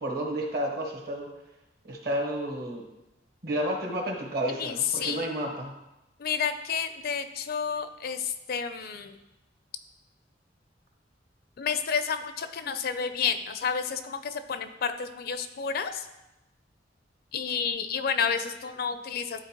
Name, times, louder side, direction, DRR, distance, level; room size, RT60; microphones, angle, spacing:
voice 1, 0.0-1.3 1.8-2.8 3.4-5.7 8.8-8.9, right 1 dB, 55° right, 0 dB, 1.5 m, -31 dB
voice 2, 4.6-5.2 6.2-9.2 11.6-16.0 17.3-19.4, left 6 dB, 55° left, 10 dB, 0.4 m, -30 dB
12.0 x 4.1 x 2.9 m, 0.96 s
head